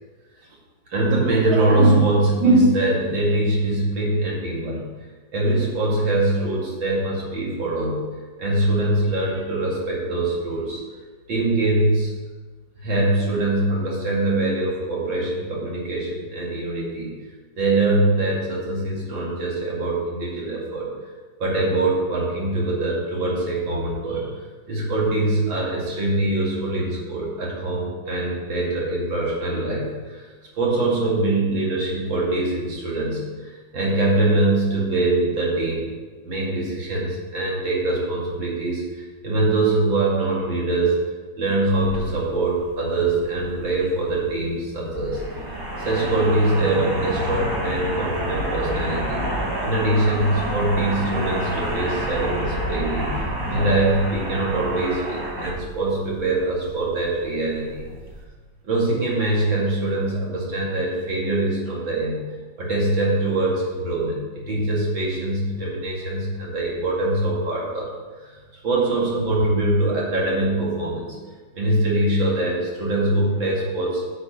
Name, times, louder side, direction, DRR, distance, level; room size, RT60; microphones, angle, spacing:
voice 1, 0.9-4.9 5.3-8.0 8.4-10.8 11.3-12.1 12.8-17.1 17.6-20.9 21.4-24.3 24.7-30.3 30.6-35.9 36.2-41.0 41.4-45.2 45.8-49.3 49.6-53.1 53.5-57.9 58.6-62.2 62.6-67.9 68.2-71.2 71.5-74.0, right 2 dB, 80° right, -4 dB, 3.0 m, -23 dB
sound 1, 41.7-58.2, equal, 15° right, 1.0 m, -29 dB
9.2 x 6.9 x 5.3 m, 1.4 s
omnidirectional pair, 2.1 m